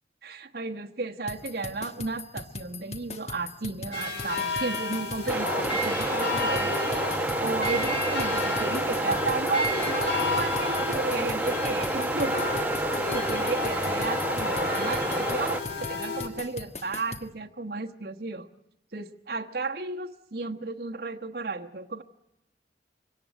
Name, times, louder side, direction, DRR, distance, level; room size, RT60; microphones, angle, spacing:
voice 1, 0.2-6.9 7.4-12.5 12.9-18.5 18.9-22.0, right 3 dB, 55° right, 3 dB, 1.2 m, -33 dB
sound 1, 1.3-17.3, left 3 dB, 35° left, 1.4 m, -40 dB
sound 2, 3.9-16.3, left 3 dB, 80° left, 4.2 m, -32 dB
sound 3, 5.3-15.6, right 2 dB, 10° right, 1.0 m, -29 dB
24.5 x 17.5 x 9.2 m, 0.84 s
head